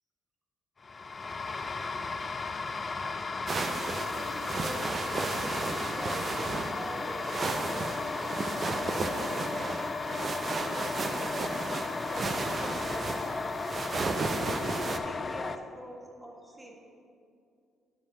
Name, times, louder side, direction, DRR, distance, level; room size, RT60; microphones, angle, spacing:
sound 1, 0.8-15.6, left 4 dB, 35° left, 0.4 m, -35 dB
voice 1, 2.9-7.9 8.6-9.7 10.1-13.5 14.3-16.8, equal, 15° right, 0 dB, 1.5 m, -45 dB
sound 2, 3.5-15.0, right 3 dB, 45° right, 0.5 m, -34 dB
9.7 x 3.4 x 5.5 m, 2.5 s
supercardioid pair, 60°, 0 cm